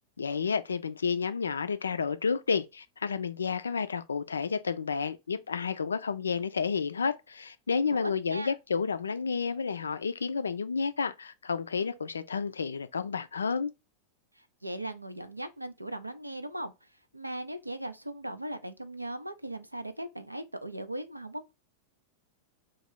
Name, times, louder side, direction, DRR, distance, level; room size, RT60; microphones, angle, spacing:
voice 1, 0.2-13.7, left 5 dB, 70° left, 0.3 m, -31 dB
voice 2, 7.9-8.5 14.4-16.9 17.1-21.5, right 1 dB, 85° right, 0.4 m, -38 dB
3.0 x 2.3 x 4.3 m
figure-of-eight pair, 90°, 0 cm